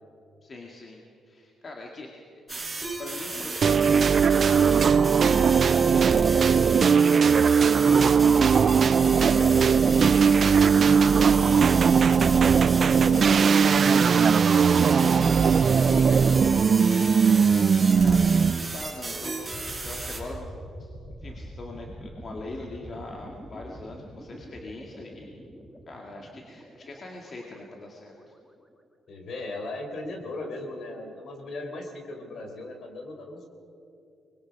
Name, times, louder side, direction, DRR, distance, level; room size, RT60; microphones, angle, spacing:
voice 1, 0.4-2.7 3.0-3.7 4.3-4.8 5.2-12.3 12.8-18.4 18.7-20.5 20.8-20.9 21.2-25.4 25.9-28.1, left 2 dB, 40° left, 0 dB, 2.0 m, -41 dB
sound 1, 2.5-20.2, right 2 dB, 15° right, 4.7 m, -34 dB
sound 2, 3.6-18.7, right 6 dB, 50° right, 0.4 m, -19 dB
sound 3, 19.4-28.3, equal, 10° left, 1.9 m, -44 dB
voice 2, 29.1-33.5, left 2 dB, 60° left, 3 dB, 3.8 m, -37 dB
23.5 x 21.0 x 5.3 m, 2.7 s
cardioid pair, 90°, 0 cm